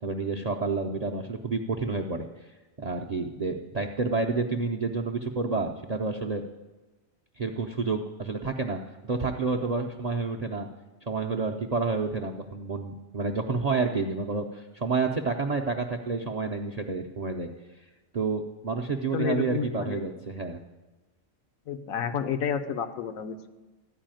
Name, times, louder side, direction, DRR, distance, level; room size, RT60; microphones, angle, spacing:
voice 1, 0.0-2.5 2.8-6.4 7.4-10.7 11.0-17.5 18.1-20.6, right 4 dB, 55° right, 6 dB, 0.4 m, -29 dB
voice 2, 19.1-20.0 21.7-23.5, left 8 dB, 85° left, 7 dB, 1.2 m, -30 dB
13.5 x 4.7 x 9.0 m, 1.2 s
omnidirectional pair, 1.4 m